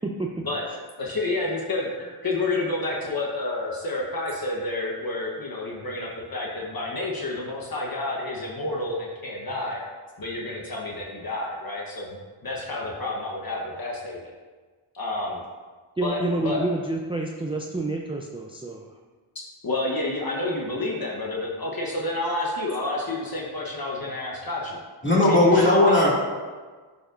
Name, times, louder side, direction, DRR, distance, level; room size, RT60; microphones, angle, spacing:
voice 1, 0.0-0.4 16.0-18.9, right 2 dB, 10° right, 0 dB, 0.4 m, -28 dB
voice 2, 1.0-9.8 10.2-14.3 14.9-15.4 16.0-16.6 19.6-24.8 25.3-26.0, left 2 dB, 45° left, -3 dB, 1.1 m, -29 dB
voice 3, 25.0-26.1, left 1 dB, 25° left, -5 dB, 2.3 m, -17 dB
11.5 x 5.3 x 2.5 m, 1.4 s
wide cardioid pair, 95°, 49 cm